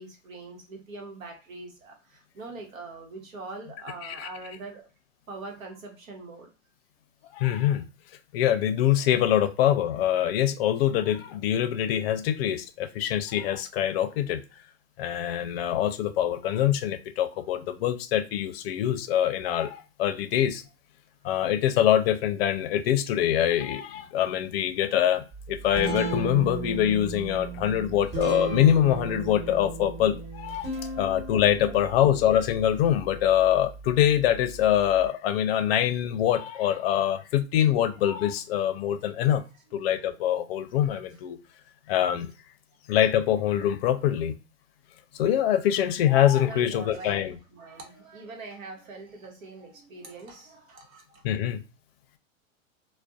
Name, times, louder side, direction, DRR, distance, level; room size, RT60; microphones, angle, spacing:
voice 1, 0.0-4.8 5.3-6.5 21.2-21.3 30.6-31.0 31.5-32.2 46.4-51.2, right 3 dB, 85° right, 2 dB, 1.0 m, -43 dB
voice 2, 7.3-7.8 8.3-14.4 15.0-20.6 21.2-30.7 31.0-39.4 39.7-41.4 41.9-42.3 42.9-44.3 45.1-47.3 51.2-51.6, left 11 dB, 50° left, 9 dB, 0.5 m, -24 dB
Guitar, 25.3-35.1, right 4 dB, 15° right, 1.0 m, -36 dB
2.5 x 2.1 x 2.3 m, 0.30 s
hypercardioid pair, 125°, 40 cm